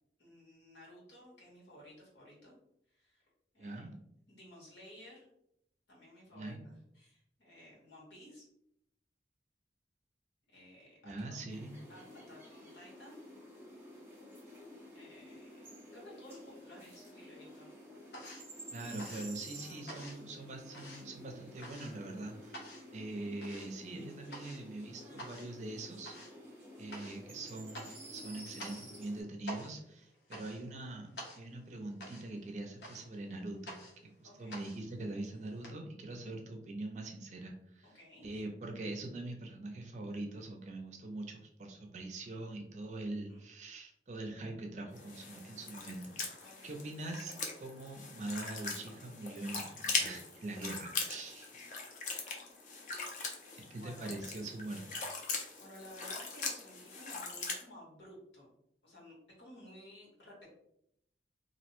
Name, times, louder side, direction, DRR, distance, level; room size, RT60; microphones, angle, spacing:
voice 1, 0.2-2.5 2.9-3.3 3.5-3.8 4.3-5.3 5.9-8.4 10.5-11.4 11.9-13.2 14.9-17.7 19.5-19.9 22.8-23.2 30.5-30.8 34.2-34.6 37.8-38.4 43.3-43.4 46.4-46.8 52.2-52.3 53.7-54.1 55.6-58.5 58.8-60.5, left 1 dB, 90° left, -4 dB, 1.3 m, -55 dB
voice 2, 3.6-3.9 6.3-6.7 11.0-11.7 18.7-26.1 26.8-33.8 34.2-46.2 46.6-51.5 53.7-54.9, right 2 dB, 40° right, 3 dB, 0.4 m, -43 dB
sound 1, 11.5-29.2, equal, 15° right, 0.7 m, -52 dB
sound 2, 16.4-17.1 17.4-35.7, equal, 70° left, 0.8 m, -50 dB
sound 3, 44.9-57.6, left 4 dB, 45° left, 0.4 m, -41 dB
2.5 x 2.1 x 2.9 m, 0.75 s
head